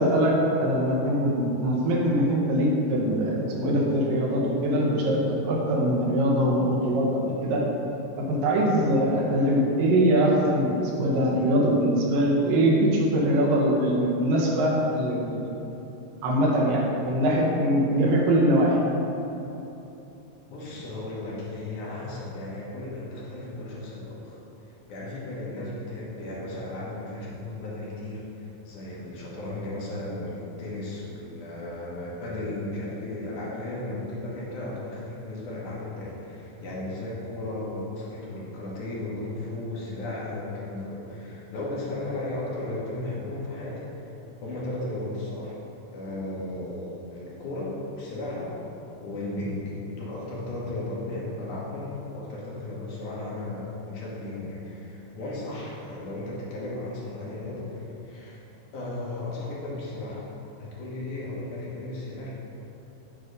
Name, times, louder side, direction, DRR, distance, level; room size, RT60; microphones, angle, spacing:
voice 1, 0.0-7.6 8.2-15.5 16.2-18.8, equal, 80° right, -3 dB, 2.6 m, -23 dB
voice 2, 20.5-24.4 24.9-44.1 44.4-45.5 45.9-48.5 49.0-49.6 49.9-58.4 58.7-60.3 60.6-62.3, left 2 dB, 70° left, -5 dB, 2.3 m, -35 dB
8.3 x 3.6 x 5.1 m, 3.0 s
omnidirectional pair, 4.0 m